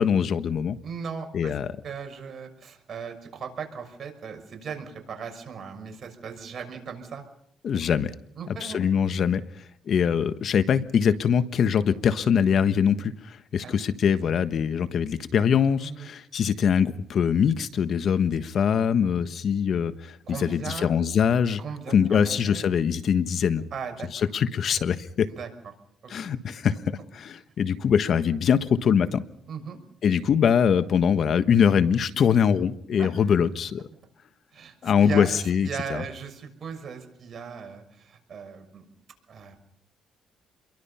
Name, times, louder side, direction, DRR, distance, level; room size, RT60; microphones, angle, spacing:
voice 1, 0.0-0.8 1.3-1.7 7.6-8.1 8.6-9.4 9.9-21.6 21.9-23.6 24.3-25.3 26.1-29.2 30.0-33.9 34.8-36.0, left 7 dB, 60° left, 11 dB, 1.3 m, -23 dB
voice 2, 0.8-1.6 1.8-7.2 8.4-8.9 13.6-13.8 15.8-16.1 19.0-19.4 20.2-20.9 21.6-22.7 23.7-24.1 25.3-25.5 26.0-26.4 29.5-29.8 33.0-33.1 34.5-35.4 35.6-38.8 39.3-39.6, right 6 dB, 55° right, 6 dB, 6.1 m, -38 dB
29.5 x 23.0 x 5.7 m, 0.71 s
cardioid pair, 90°, 0 cm